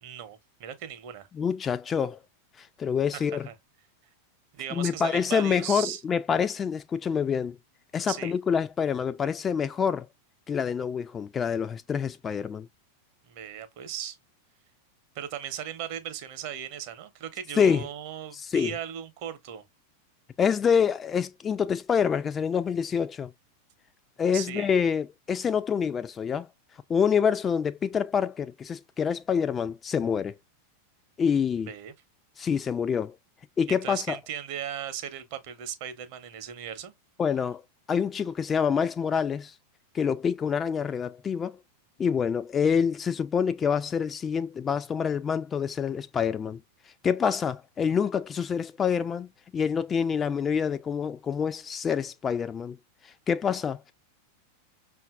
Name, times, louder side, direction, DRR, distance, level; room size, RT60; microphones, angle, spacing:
voice 1, 0.0-1.3 3.1-3.5 4.5-6.0 8.1-8.3 13.3-14.2 15.1-19.6 24.3-24.7 31.7-31.9 33.7-36.9, right 9 dB, 45° right, 0.8 m, -37 dB
voice 2, 1.3-2.2 2.6-3.5 4.7-7.6 7.9-10.1 10.5-12.7 17.6-17.9 18.3-18.7 20.4-23.3 24.2-26.5 26.9-30.3 31.2-31.7 32.4-33.1 33.6-34.2 37.2-37.6 37.9-39.5 39.9-41.6 42.0-46.6 47.0-49.3 49.5-52.8 53.3-53.8, left 7 dB, 20° left, 0.3 m, -26 dB
5.5 x 2.6 x 2.4 m
figure-of-eight pair, 90°, 0 cm